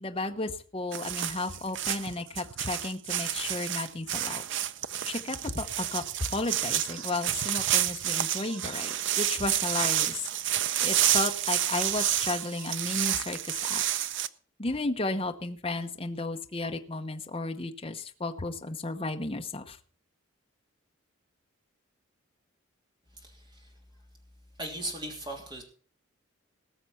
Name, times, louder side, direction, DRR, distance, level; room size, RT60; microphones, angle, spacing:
voice 1, 0.0-4.4 5.1-6.0 6.3-10.1 10.8-13.4 13.7-13.8 14.6-19.8, left 2 dB, 25° left, 5 dB, 0.9 m, -33 dB
sound 1, 0.9-14.3, right 11 dB, 55° right, 0.6 m, -29 dB
voice 2, 24.6-25.6, right 1 dB, 20° right, 1 dB, 3.1 m, -37 dB
19.0 x 6.8 x 5.7 m, 0.42 s
head